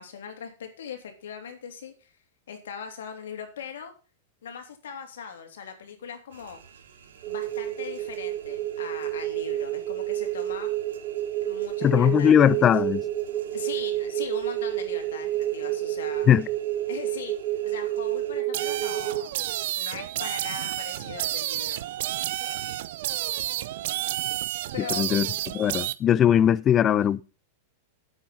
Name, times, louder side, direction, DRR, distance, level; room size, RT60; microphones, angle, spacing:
voice 1, 0.0-2.1 2.5-3.9 4.4-6.6 7.3-10.7 11.4-12.7 13.5-16.3 16.9-17.3 17.6-19.4 19.8-21.8 24.7-25.1, left 7 dB, 75° left, 3.1 m, -40 dB
sound 1, 6.3-18.4, right 7 dB, 80° right, 2.8 m, -52 dB
sound 2, 7.2-19.2, right 14 dB, 45° right, 1.5 m, -29 dB
voice 2, 11.8-13.0 16.3-16.5 25.0-25.3 25.5-27.2, left 9 dB, 30° left, 0.7 m, -19 dB
sound 3, 18.5-25.9, right 14 dB, 65° right, 0.7 m, -30 dB
9.5 x 8.2 x 5.7 m
hypercardioid pair, 105°, 0 cm